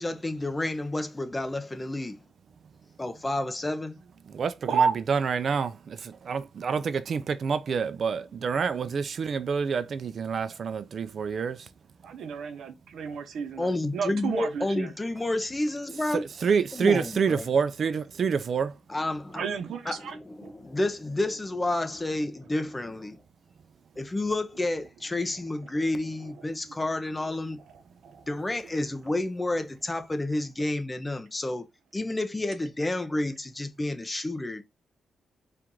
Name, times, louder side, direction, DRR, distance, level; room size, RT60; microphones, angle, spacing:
voice 1, 0.0-2.2 3.0-3.9 13.6-16.2 16.7-17.5 18.9-19.5 19.8-23.2 24.0-27.6 28.3-31.6 31.9-34.6, left 2 dB, 15° left, 0.7 m, -30 dB
voice 2, 4.3-11.7 16.4-18.8, right 6 dB, 55° right, 0.5 m, -27 dB
voice 3, 12.0-14.9 19.4-20.1 20.4-20.5 28.0-28.2, right 6 dB, 75° right, 0.8 m, -30 dB
4.4 x 2.5 x 3.7 m
cardioid pair, 115°, 0 cm